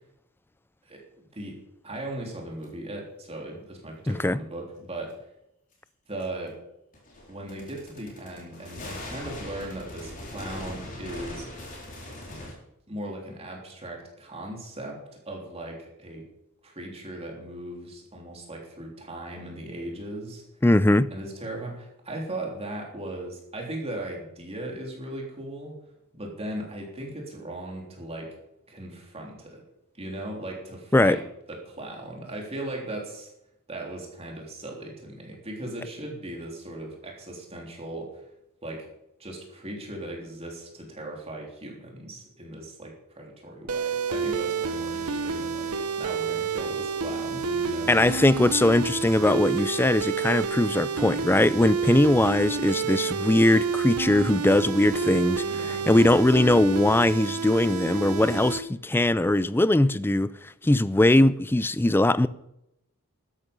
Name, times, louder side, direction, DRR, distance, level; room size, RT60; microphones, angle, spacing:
voice 1, 0.9-1.6 1.8-5.3 6.1-6.6 7.3-11.5 12.9-16.3 16.6-20.4 21.1-25.8 26.1-28.4 28.7-29.6 29.9-33.3 33.7-38.3 38.6-38.9 39.2-45.7 46.0-47.9 52.2-52.4 55.5-55.9, right 1 dB, 30° right, 3.4 m, -38 dB
sound 1, 2.6-2.7 4.1-4.2 6.2-6.3 6.9-12.5, left 1 dB, 40° left, 4.1 m, -40 dB
voice 2, 4.1-4.4 20.6-21.1 30.9-31.2 47.9-62.3, left 1 dB, 10° left, 0.4 m, -21 dB
sound 2, 43.7-58.6, right 5 dB, 90° right, 1.0 m, -29 dB
13.0 x 11.0 x 5.4 m
head